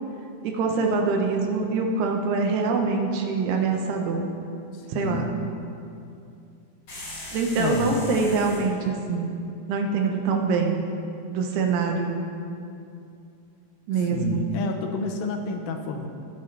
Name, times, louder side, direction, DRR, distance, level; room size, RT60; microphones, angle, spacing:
voice 1, 0.4-4.3 4.9-5.3 7.3-9.3 9.7-10.8 11.3-12.2 13.9-14.4, right 4 dB, 85° right, 3 dB, 3.1 m, -24 dB
voice 2, 4.7-5.4 7.6-8.0 14.0-16.1, left 4 dB, 75° left, 4 dB, 2.4 m, -30 dB
sound 1, 6.9-8.7, left 2 dB, 35° left, 2.8 m, -39 dB
17.5 x 9.3 x 3.4 m, 2.6 s
omnidirectional pair, 4.5 m